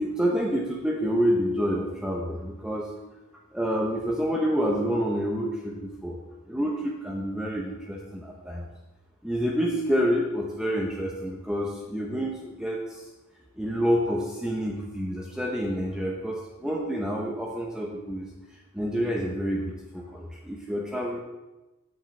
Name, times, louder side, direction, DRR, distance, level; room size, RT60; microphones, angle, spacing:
voice 1, 0.0-2.9 3.5-6.2 6.4-8.7 9.2-13.1 13.5-18.3 18.7-21.2, equal, 5° right, -2 dB, 0.8 m, -28 dB
9.1 x 5.6 x 7.1 m, 1.1 s
head